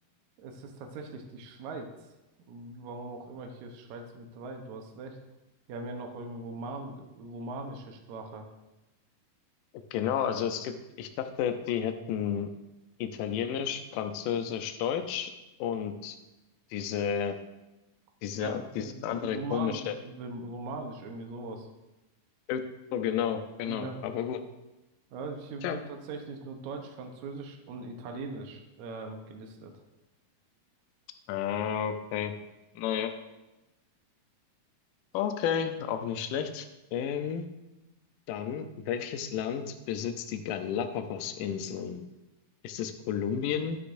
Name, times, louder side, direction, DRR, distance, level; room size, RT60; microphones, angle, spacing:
voice 1, 0.4-1.9 2.5-5.2 5.7-8.5 18.4-21.7 23.6-24.0 25.1-29.7, right 3 dB, 70° right, 3 dB, 1.9 m, -40 dB
voice 2, 9.9-12.5 13.0-15.3 15.6-16.2 16.7-17.4 18.2-19.9 22.5-22.6 22.9-24.4 25.6-25.8 31.3-32.3 32.8-33.2 35.1-37.5 38.3-42.1 42.6-43.8, left 8 dB, 75° left, 7 dB, 2.1 m, -32 dB
11.5 x 9.9 x 2.6 m, 1.0 s
omnidirectional pair, 4.3 m